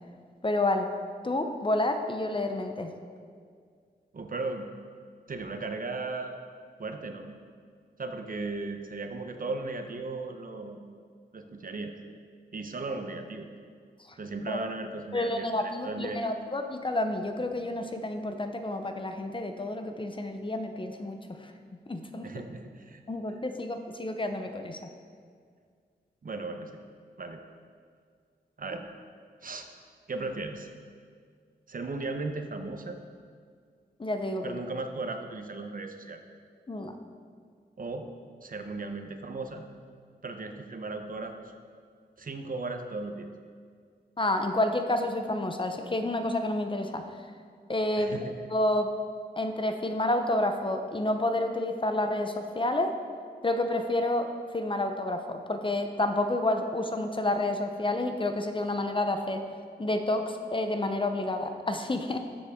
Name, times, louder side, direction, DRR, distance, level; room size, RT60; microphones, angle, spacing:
voice 1, 0.4-0.9 1.2-2.9 14.5-14.6 15.1-21.5 21.9-22.4 23.1-24.8 34.0-34.6 36.7-36.9 44.2-47.0 47.7-48.2 48.5-48.9 49.4-52.9 53.4-59.4 59.8-62.2, left 1 dB, 30° left, 6 dB, 0.7 m, -29 dB
voice 2, 4.1-4.7 5.3-6.4 6.8-7.3 8.0-10.8 11.3-12.0 12.5-13.5 14.2-16.2 22.2-23.0 26.2-26.7 27.2-27.4 28.6-28.9 29.4-29.7 30.1-30.7 31.7-33.0 34.4-36.2 37.8-38.1 38.4-39.7 40.2-41.5 42.2-43.3 48.0-48.5, right 3 dB, 50° right, 6 dB, 0.8 m, -36 dB
13.0 x 7.1 x 3.6 m, 2.1 s
wide cardioid pair, 100°, 18 cm